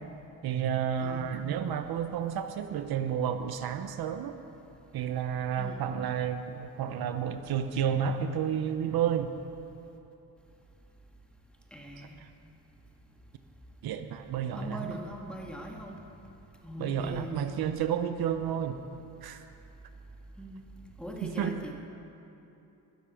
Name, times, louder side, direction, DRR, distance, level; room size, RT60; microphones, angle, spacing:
voice 1, 0.4-4.4 4.9-9.3 13.8-14.9 16.8-18.8 19.2-19.4 21.2-21.5, right 8 dB, 70° right, 8 dB, 0.8 m, -31 dB
voice 2, 1.0-1.4 5.6-5.8 11.7-12.2 14.6-16.1 16.6-17.5 20.4-20.6 21.0-21.7, equal, 5° left, 0 dB, 1.9 m, -41 dB
22.0 x 7.4 x 5.8 m, 2.9 s
cardioid pair, 95°, 38 cm